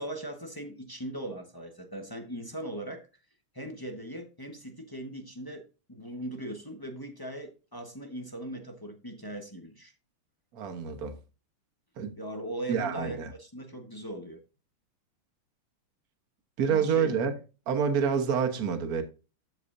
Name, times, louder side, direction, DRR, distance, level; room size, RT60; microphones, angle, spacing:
voice 1, 0.0-3.0 3.5-9.9 12.2-14.4 16.7-17.2, right 1 dB, 20° left, 0.7 m, -39 dB
voice 2, 10.5-11.2 12.0-12.2 12.7-13.3 16.6-17.3 17.7-19.0, right 7 dB, 50° right, 1.5 m, -27 dB
13.5 x 4.8 x 2.6 m
omnidirectional pair, 2.4 m